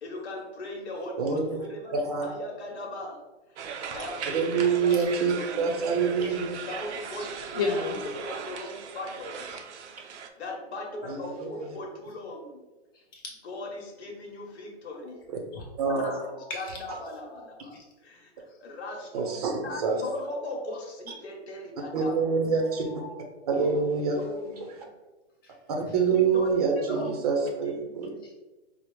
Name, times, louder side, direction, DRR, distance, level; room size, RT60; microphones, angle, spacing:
voice 1, 0.0-3.2 3.5-4.9 5.4-5.7 6.7-7.3 8.2-9.6 10.4-12.6 13.4-15.2 16.0-16.3 16.5-16.7 17.0-17.7 18.0-22.1 23.5-23.8 24.2-24.9 26.1-27.1 27.4-28.3, left 2 dB, 75° left, -1 dB, 1.1 m, -39 dB
voice 2, 1.2-1.6 1.9-2.2 4.3-6.6 11.0-11.7 15.3-15.4 15.8-16.2 19.1-20.0 21.9-22.8 23.5-24.2 25.9-28.1, right 5 dB, 35° right, 1 dB, 0.6 m, -26 dB
sound 1, 3.6-10.3, right 6 dB, 85° right, 0.6 m, -38 dB
voice 3, 7.5-8.4 11.2-11.4 12.9-13.0 15.5-15.7 16.3-16.8 17.1-17.8 22.6-23.2 25.4-25.5 25.9-26.0 28.2-28.3, left 4 dB, 20° left, -1 dB, 0.5 m, -35 dB
4.8 x 2.0 x 3.0 m, 1.1 s
hypercardioid pair, 160°, 33 cm